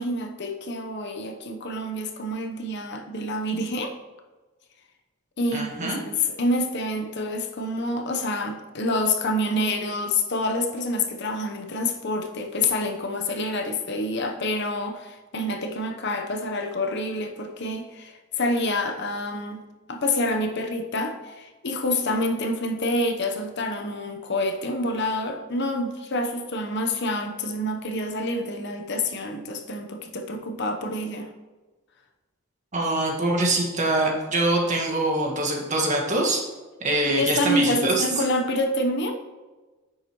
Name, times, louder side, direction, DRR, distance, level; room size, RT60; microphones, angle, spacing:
voice 1, 0.0-3.9 5.4-19.6 19.9-31.3 37.1-39.1, left 1 dB, 55° left, 4 dB, 0.9 m, -27 dB
voice 2, 5.5-6.0 32.7-36.4 36.8-38.0, right 2 dB, 35° right, 0 dB, 1.7 m, -24 dB
9.7 x 7.4 x 3.1 m, 1.2 s
head